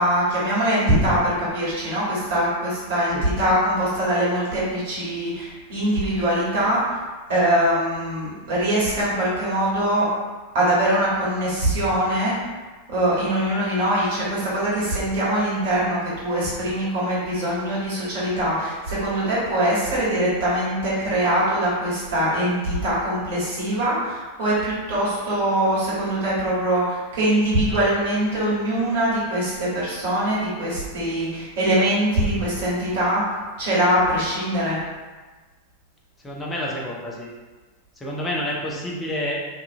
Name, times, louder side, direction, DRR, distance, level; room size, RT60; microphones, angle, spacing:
voice 1, 0.0-7.0 7.3-10.1 10.5-12.4 12.9-33.2 33.6-34.8, right 1 dB, 50° right, -8 dB, 1.2 m, -22 dB
voice 2, 36.2-37.3 38.0-39.4, left 1 dB, 15° left, -3 dB, 0.6 m, -29 dB
2.7 x 2.4 x 2.6 m, 1.3 s
figure-of-eight pair, 90°, 0 cm